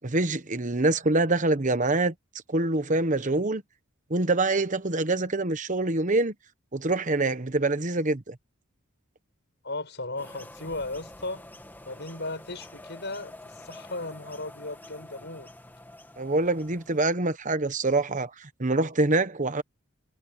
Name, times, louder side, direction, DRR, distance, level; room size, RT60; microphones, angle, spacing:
voice 1, 0.0-2.1 2.5-3.6 4.1-6.3 6.7-8.4 16.2-19.6, right 2 dB, 35° right, 1.1 m, -25 dB
voice 2, 9.6-11.5 11.8-15.5, left 2 dB, 50° left, 7.9 m, -36 dB
sound 1, 10.2-17.1, left 1 dB, 10° left, 2.6 m, -47 dB
head